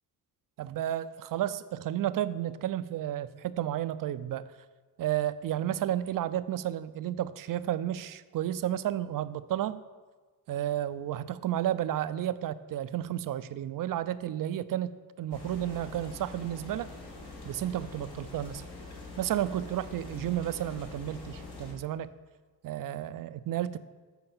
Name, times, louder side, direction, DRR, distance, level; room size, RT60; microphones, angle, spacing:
voice 1, 0.6-4.5 5.0-9.8 10.5-16.9 17.4-18.6 19.2-22.1 22.6-23.8, right 12 dB, 60° right, 15 dB, 0.5 m, -32 dB
sound 1, 15.3-21.7, left 3 dB, 70° left, 2.1 m, -45 dB
8.0 x 4.5 x 7.0 m, 1.3 s
cardioid pair, 95°, 39 cm